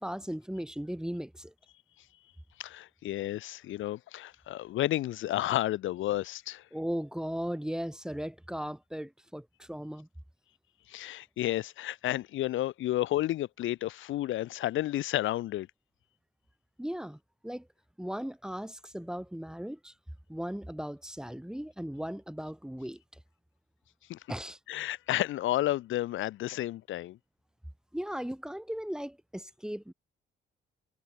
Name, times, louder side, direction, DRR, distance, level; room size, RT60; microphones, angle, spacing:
voice 1, 0.0-1.5 6.7-10.1 16.8-17.7 18.0-19.9 20.3-23.0 24.3-24.6 27.9-29.9, equal, 5° right, 1.7 m, -37 dB
voice 2, 2.6-6.6 10.9-15.7 24.1-24.2 24.7-27.2, left 14 dB, 80° left, 1.0 m, -31 dB
cardioid pair, 90°, 20 cm